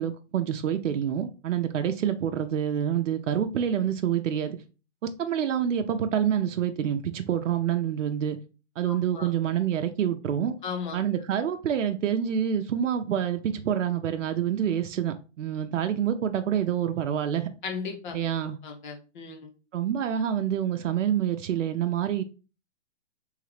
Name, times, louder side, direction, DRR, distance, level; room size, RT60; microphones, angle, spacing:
voice 1, 0.0-4.6 5.0-8.4 8.8-10.5 10.9-17.5 18.1-18.6 19.7-22.2, right 9 dB, 80° right, 0.7 m, -27 dB
voice 2, 8.8-9.3 10.6-11.0 17.6-18.2 18.6-19.5, left 5 dB, 40° left, 0.9 m, -36 dB
3.7 x 3.2 x 3.3 m
hypercardioid pair, 155°, 37 cm